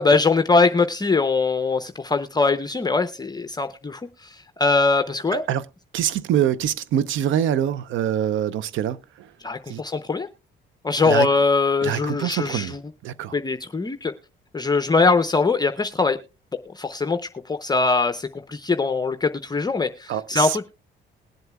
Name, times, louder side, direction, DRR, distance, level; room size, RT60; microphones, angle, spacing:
voice 1, 0.0-4.3 4.6-5.4 9.4-10.3 10.8-12.8 13.3-14.1 14.5-16.2 16.8-17.2 17.5-20.7, left 4 dB, 20° left, 0.6 m, -22 dB
voice 2, 5.3-5.7 5.9-9.3 9.7-9.8 11.0-11.3 11.8-12.7 13.0-13.4 20.1-20.6, right 10 dB, 80° right, 0.6 m, -24 dB
20.5 x 7.9 x 2.3 m
cardioid pair, 90°, 20 cm